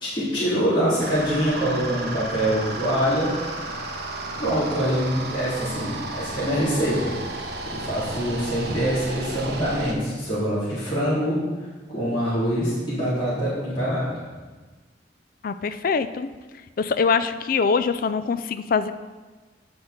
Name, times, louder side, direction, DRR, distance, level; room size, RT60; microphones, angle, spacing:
voice 1, 0.0-3.3 4.4-11.4 11.9-14.2, equal, 25° left, -11 dB, 2.5 m, -24 dB
sound 1, 1.0-9.9, right 2 dB, 60° right, 0.9 m, -33 dB
voice 2, 15.4-16.3 16.8-18.9, left 5 dB, 50° left, 11 dB, 0.4 m, -23 dB
9.3 x 6.2 x 3.8 m, 1.3 s
head